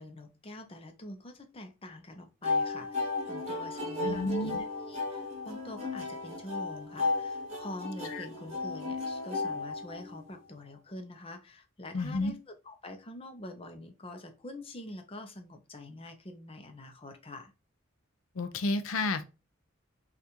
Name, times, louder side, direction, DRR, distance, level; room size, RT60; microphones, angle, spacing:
voice 1, 0.0-4.5 4.8-17.5, left 1 dB, 25° left, 0.7 m, -45 dB
sound 1, 2.4-10.4, left 3 dB, 30° right, 1.6 m, -34 dB
voice 2, 4.0-4.6 8.1-8.2 11.9-12.3 18.4-19.2, left 2 dB, 85° left, 0.5 m, -31 dB
5.6 x 2.5 x 3.0 m
head